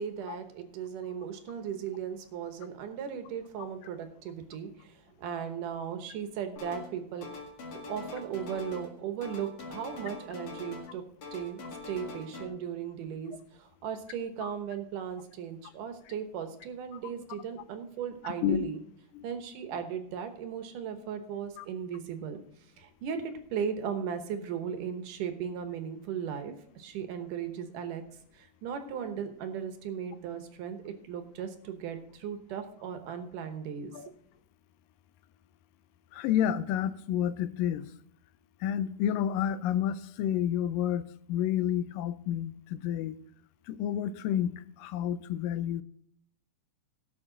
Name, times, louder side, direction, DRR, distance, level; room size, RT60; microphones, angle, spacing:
voice 1, 0.0-7.3 7.9-11.0 11.3-11.6 11.9-18.8 19.2-22.4 22.8-28.0 28.3-33.9, right 8 dB, 75° right, 7 dB, 2.6 m, -37 dB
sound 1, 6.6-7.0 7.2-8.9 9.2-10.9 11.2-12.5, left 3 dB, 55° left, 3.0 m, -43 dB
voice 2, 18.2-18.6 19.1-19.3 21.6-21.7 33.9-34.1 36.1-37.9 38.6-43.2 43.7-45.8, left 10 dB, 85° left, 13 dB, 2.3 m, -30 dB
17.0 x 7.1 x 3.8 m, 0.67 s
omnidirectional pair, 3.9 m